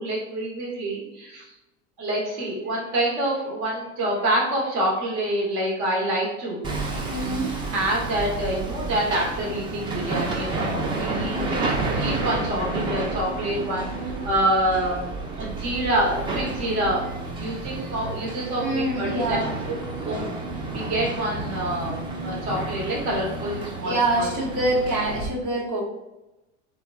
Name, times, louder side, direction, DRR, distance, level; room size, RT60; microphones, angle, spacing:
voice 1, 0.0-1.5 2.0-15.1 15.4-19.4 19.7-19.8 20.0-20.3 20.7-22.0 22.2-24.3, right 1 dB, 55° right, -3 dB, 1.0 m, -27 dB
Hammer, 6.6-25.3, right 3 dB, 15° right, 0.3 m, -31 dB
voice 2, 7.1-7.5 11.3-11.6 18.6-19.5 23.8-25.8, right 1 dB, 80° right, -5 dB, 1.1 m, -25 dB
3.2 x 2.2 x 2.3 m, 0.99 s
hypercardioid pair, 90°, 37 cm